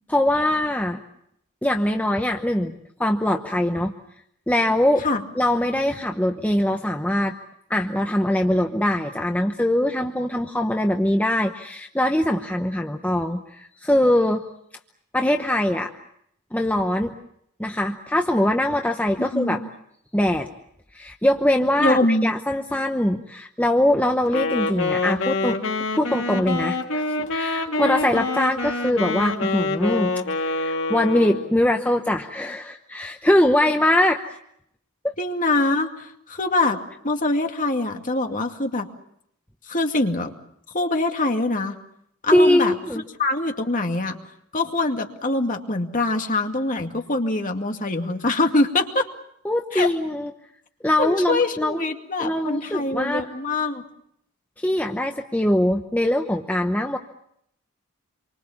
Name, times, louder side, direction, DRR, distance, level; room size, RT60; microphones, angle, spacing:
voice 1, 0.1-1.0 1.6-2.7 3.0-3.9 4.5-5.0 5.4-7.3 7.7-14.4 15.1-15.9 16.5-17.1 17.6-19.6 20.1-20.5 20.9-25.6 25.9-34.2 35.0-35.1 42.3-43.0 49.4-50.3 50.8-51.8 52.2-53.2 54.6-57.0, left 1 dB, 5° left, 3 dB, 1.0 m, -22 dB
voice 2, 19.2-19.7 21.8-22.3 35.2-38.9 39.7-40.3 40.7-41.8 42.2-42.7 43.2-44.2 44.5-49.1 49.7-49.9 51.0-53.8, left 2 dB, 35° left, 4 dB, 2.2 m, -24 dB
Wind instrument woodwind instrument, 24.3-31.5, left 3 dB, 55° left, 2.3 m, -26 dB
27.5 x 24.0 x 7.2 m, 0.73 s
head